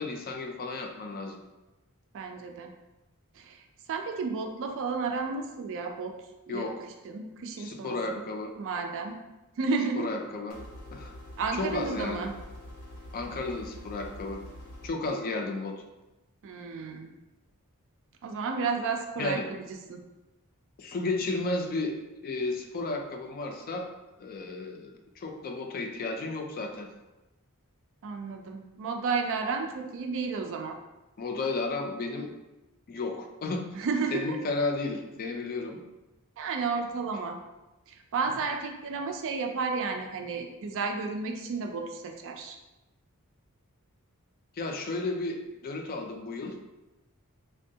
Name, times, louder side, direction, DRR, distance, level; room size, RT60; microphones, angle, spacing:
voice 1, 0.0-1.4 6.5-6.7 7.6-8.5 10.0-10.6 10.9-11.1 11.5-12.3 13.1-14.4 14.8-15.8 19.2-19.5 20.8-21.9 22.2-23.9 24.2-26.9 31.2-32.3 32.9-33.6 34.1-35.8 44.6-46.6, left 3 dB, 40° left, 3 dB, 0.3 m, -33 dB
voice 2, 2.1-2.7 3.3-3.6 3.9-6.1 6.5-6.8 7.0-8.2 8.6-9.2 9.6-10.1 11.4-12.3 16.4-17.1 18.2-19.4 19.7-20.0 28.0-30.8 33.7-34.4 36.4-37.4 37.9-42.6, right 4 dB, 60° right, 4 dB, 0.4 m, -32 dB
sound 1, 10.5-14.9, left 1 dB, 85° left, 0.7 m, -45 dB
3.4 x 2.2 x 2.7 m, 1.0 s
head